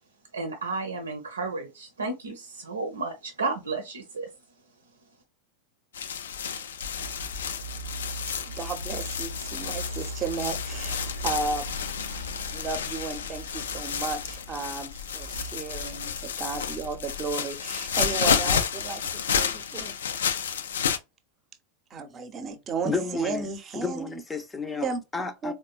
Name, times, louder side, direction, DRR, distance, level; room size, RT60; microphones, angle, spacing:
voice 1, 0.3-4.3, right 3 dB, 85° right, 0.6 m, -32 dB
sound 1, 5.9-21.0, left 7 dB, 70° left, 0.4 m, -31 dB
sound 2, 6.9-17.3, left 1 dB, 90° left, 0.8 m, -40 dB
voice 2, 8.5-11.7 12.5-19.9 21.9-24.1 24.8-25.0 25.4-25.5, right 4 dB, 30° right, 0.7 m, -34 dB
voice 3, 22.8-23.5 23.7-25.5, left 4 dB, 15° left, 0.5 m, -32 dB
4.1 x 2.2 x 2.3 m
figure-of-eight pair, 90°, 0 cm